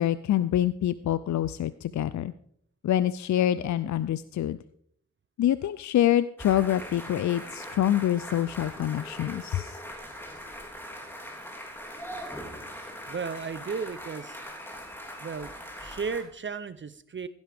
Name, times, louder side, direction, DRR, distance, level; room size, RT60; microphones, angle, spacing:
voice 1, 0.0-2.3 2.8-4.6 5.4-9.8, left 11 dB, 70° left, 15 dB, 0.5 m, -26 dB
sound 1, 6.4-16.2, equal, 5° left, 3.2 m, -41 dB
voice 2, 13.1-14.4 15.2-15.5 15.8-17.3, right 5 dB, 40° right, 14 dB, 0.6 m, -34 dB
16.0 x 10.5 x 3.5 m, 0.66 s
cardioid pair, 60°, 29 cm